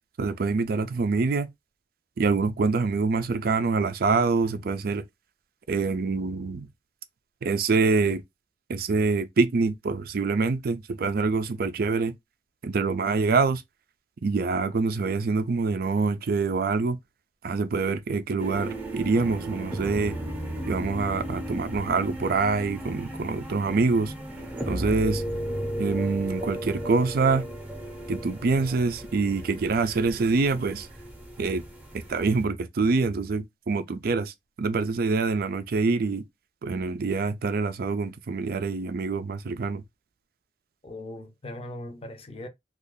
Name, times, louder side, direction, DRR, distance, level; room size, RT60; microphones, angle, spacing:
voice 1, 0.2-1.5 2.2-5.0 5.7-6.7 7.4-8.2 8.7-12.1 12.6-13.6 14.2-17.0 17.4-20.2 20.7-24.1 24.7-25.2 25.8-27.5 28.1-30.9 31.4-31.6 32.1-36.2 36.6-39.8, right 4 dB, 55° right, 0.4 m, -25 dB
sound 1, 18.4-32.4, right 1 dB, 10° right, 0.7 m, -35 dB
voice 2, 40.8-42.5, left 1 dB, 35° left, 0.6 m, -39 dB
2.6 x 2.4 x 3.6 m
head